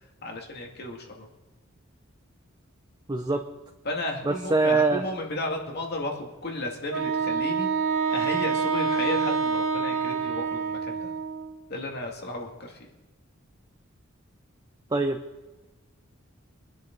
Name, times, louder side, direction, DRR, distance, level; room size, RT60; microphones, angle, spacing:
voice 1, 0.2-1.3 3.8-7.7 8.1-11.1 11.7-12.8, left 1 dB, 50° left, 1 dB, 2.3 m, -33 dB
voice 2, 3.1-3.4 4.2-5.0 14.9-15.2, right 3 dB, 20° right, 4 dB, 0.7 m, -23 dB
Wind instrument woodwind instrument, 6.9-11.5, right 5 dB, 75° right, 1.1 m, -27 dB
24.0 x 10.0 x 3.9 m, 1.1 s
head